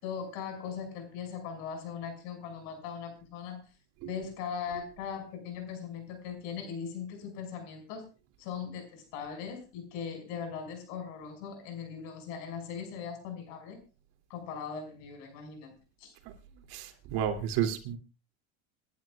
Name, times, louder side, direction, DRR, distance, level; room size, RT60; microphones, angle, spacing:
voice 1, 0.0-3.6 4.0-8.1 8.4-13.8 14.3-15.7 16.0-16.1, left 7 dB, 75° left, 5 dB, 6.1 m, -39 dB
voice 2, 16.7-18.0, right 9 dB, 75° right, 5 dB, 2.8 m, -31 dB
29.0 x 11.0 x 2.4 m, 0.31 s
supercardioid pair, 110°, 35 cm